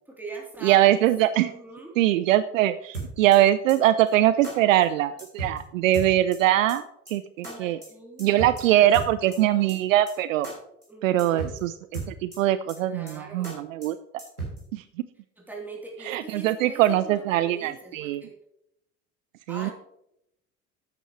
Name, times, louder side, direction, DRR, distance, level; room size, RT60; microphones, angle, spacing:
voice 1, 0.1-1.1 1.3-2.0 4.4-4.8 7.4-9.8 10.9-11.5 12.8-13.7 15.4-18.3 19.5-19.7, right 3 dB, 5° right, -2 dB, 3.3 m, -42 dB
voice 2, 0.6-1.5 2.0-7.8 8.2-10.5 11.0-14.0 14.7-14.8 16.0-18.2 19.5-19.7, right 13 dB, 60° right, 14 dB, 0.5 m, -22 dB
sound 1, 2.9-3.4 3.7-3.8 4.1-4.2 4.4-4.5 4.8-4.9 5.2-5.6 5.9-6.4 6.7-6.8 7.1-7.2 7.4-7.5 7.8-7.9 8.2-8.6 8.9-9.4 9.7-9.8 10.1-10.2 10.4-10.5 10.8-10.9 11.2-11.6 11.9-12.4 12.7-12.8 13.1-13.2 13.4-13.5 13.8-13.9 14.2-14.6, right 4 dB, 90° right, 3.4 m, -35 dB
12.5 x 9.0 x 3.1 m, 0.79 s
figure-of-eight pair, 65°, 44 cm